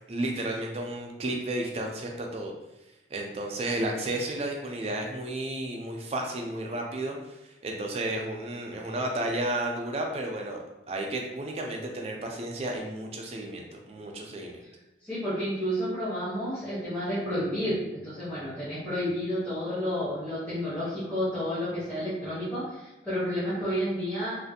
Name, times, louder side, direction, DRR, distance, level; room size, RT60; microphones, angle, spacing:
voice 1, 0.1-2.5 3.1-7.4 7.6-14.5, right 1 dB, 35° right, 1 dB, 0.4 m, -32 dB
voice 2, 15.0-24.5, equal, 10° left, -13 dB, 0.8 m, -31 dB
2.5 x 2.4 x 2.6 m, 0.97 s
head